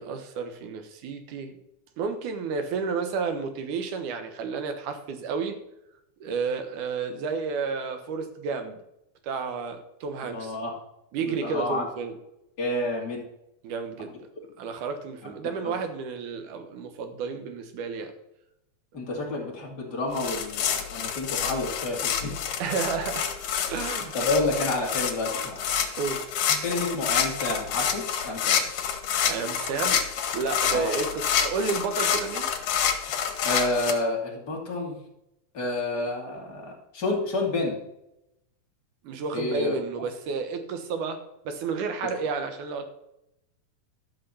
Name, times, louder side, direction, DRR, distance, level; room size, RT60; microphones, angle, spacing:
voice 1, 0.0-1.5 2.0-5.6 6.2-8.8 9.2-10.6 11.1-12.1 13.6-14.2 14.6-18.1 22.6-23.3 23.7-24.1 26.0-26.2 29.2-30.0 30.3-32.5 39.0-41.2 41.5-42.9, right 5 dB, 75° right, 7 dB, 2.7 m, -31 dB
voice 2, 10.3-10.7 11.4-11.9 12.6-13.2 14.0-14.1 15.2-15.3 15.6-15.7 18.9-22.4 24.1-25.6 26.6-28.6 30.7-30.9 33.4-35.0 35.5-37.8 39.3-39.7, left 2 dB, 35° left, -1 dB, 2.7 m, -29 dB
sound 1, 20.2-33.9, left 8 dB, 80° left, 2.8 m, -28 dB
12.5 x 6.6 x 5.6 m, 0.84 s
omnidirectional pair, 3.7 m